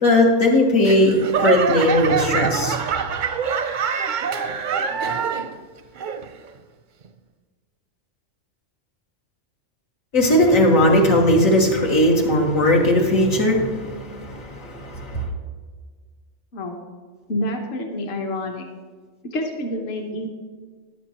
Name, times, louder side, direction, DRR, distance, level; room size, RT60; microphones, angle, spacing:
voice 1, 0.0-2.8 10.1-15.3, left 1 dB, 85° left, -1 dB, 2.1 m, -18 dB
Laughter / Clapping / Crowd, 0.8-5.6 6.0-6.5 7.1-7.2, right 6 dB, 55° right, 0.6 m, -25 dB
voice 2, 17.3-18.7 19.3-20.3, left 1 dB, 55° left, 2 dB, 1.2 m, -27 dB
14.0 x 10.5 x 3.0 m, 1.5 s
omnidirectional pair, 1.4 m